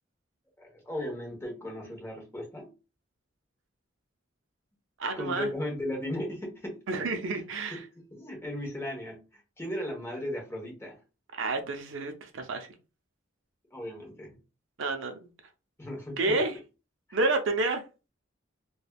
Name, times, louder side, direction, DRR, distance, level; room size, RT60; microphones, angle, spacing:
voice 1, 0.6-2.7 5.1-6.8 7.3-11.0 13.7-14.4 15.8-16.4 17.1-17.2, left 1 dB, 15° left, 1.0 m, -37 dB
voice 2, 5.0-5.5 6.9-7.8 11.3-12.7 14.8-15.3 16.2-16.5 17.1-17.8, right 3 dB, 70° right, 0.5 m, -29 dB
3.3 x 2.2 x 2.3 m
head